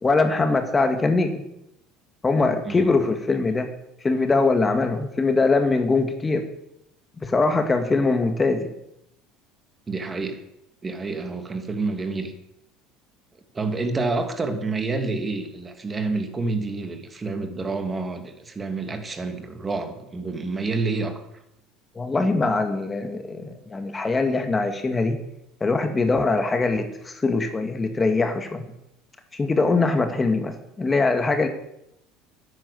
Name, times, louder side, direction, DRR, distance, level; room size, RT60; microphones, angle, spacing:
voice 1, 0.0-1.4 2.2-3.7 4.0-6.4 7.2-8.7 22.0-25.2 25.6-28.6 29.3-31.5, left 3 dB, 20° left, 7 dB, 2.0 m, -22 dB
voice 2, 2.6-2.9 9.9-10.4 10.8-12.3 13.5-21.2, right 3 dB, 25° right, 7 dB, 2.5 m, -28 dB
10.5 x 10.0 x 8.6 m, 0.82 s
hypercardioid pair, 80°, 0 cm